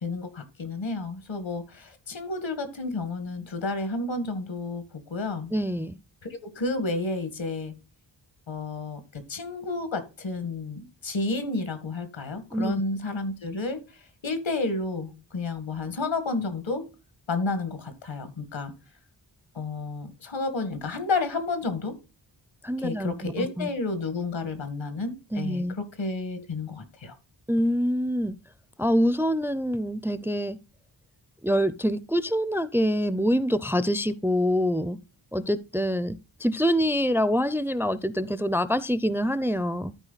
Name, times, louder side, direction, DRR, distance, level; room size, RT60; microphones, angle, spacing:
voice 1, 0.0-4.8 5.1-5.5 6.4-7.7 8.5-13.8 14.2-16.9 17.3-18.7 19.6-22.0 22.8-27.1, left 3 dB, 80° left, 1.9 m, -31 dB
voice 2, 5.5-6.0 12.5-12.8 22.6-23.7 25.3-25.8 27.5-28.3 28.8-30.6 31.4-35.0 35.3-39.9, equal, 5° right, 0.4 m, -25 dB
13.0 x 4.7 x 4.0 m
wide cardioid pair, 110°, 45 cm